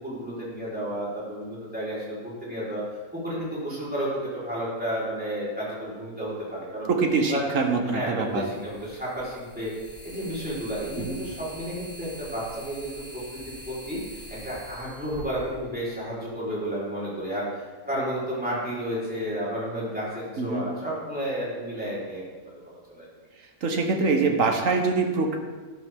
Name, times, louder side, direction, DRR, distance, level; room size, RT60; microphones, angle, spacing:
voice 1, 0.0-2.8 3.1-6.9 7.2-7.4 7.9-9.7 10.0-14.0 14.3-22.2 22.6-23.1, equal, 5° right, -8 dB, 4.3 m, -32 dB
voice 2, 6.9-8.4 11.0-11.2 20.4-20.7 23.6-25.4, right 4 dB, 60° right, 4 dB, 1.6 m, -24 dB
sound 1, 8.3-16.3, right 1 dB, 65° left, 4.1 m, -44 dB
12.5 x 12.0 x 3.7 m, 1.4 s
omnidirectional pair, 1.6 m